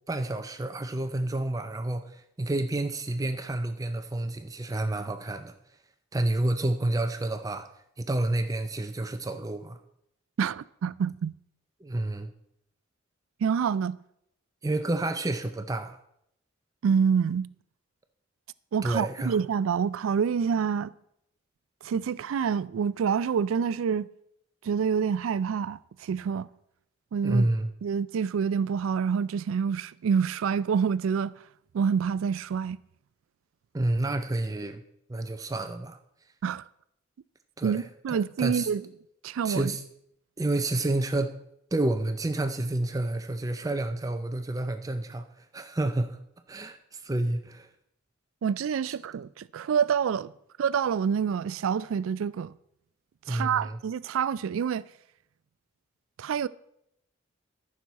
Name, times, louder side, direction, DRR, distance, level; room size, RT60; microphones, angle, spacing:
voice 1, 0.1-5.5 6.1-7.7 8.0-9.8 11.8-12.3 14.6-16.0 18.8-19.4 27.2-27.7 33.7-34.8 35.1-36.0 37.6-38.7 39.4-39.8 40.4-41.4 41.7-46.2 46.5-47.7 53.3-53.8, right 2 dB, 15° right, 0.4 m, -29 dB
voice 2, 10.4-11.3 13.4-14.0 16.8-17.5 18.7-20.9 21.8-24.1 24.6-26.5 27.1-27.4 27.8-31.3 31.7-32.8 36.4-36.6 37.6-38.8 39.2-39.7 48.4-50.3 50.6-52.5 53.3-54.8 56.2-56.5, right 6 dB, 80° right, 0.3 m, -27 dB
14.0 x 6.1 x 4.1 m
head